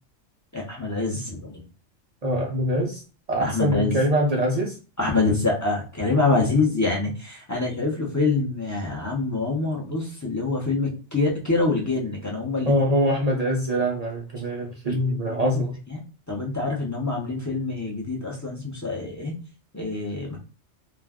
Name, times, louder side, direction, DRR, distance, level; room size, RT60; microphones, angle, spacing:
voice 1, 0.5-1.5 3.4-4.0 5.0-12.7 15.1-15.6 15.9-16.0 16.3-19.4 19.7-20.4, left 3 dB, 20° left, -3 dB, 0.5 m, -25 dB
voice 2, 2.2-3.0 3.3-4.8 12.7-15.7, equal, 60° right, -1 dB, 0.4 m, -23 dB
2.4 x 2.2 x 3.4 m, 0.36 s
omnidirectional pair, 1.3 m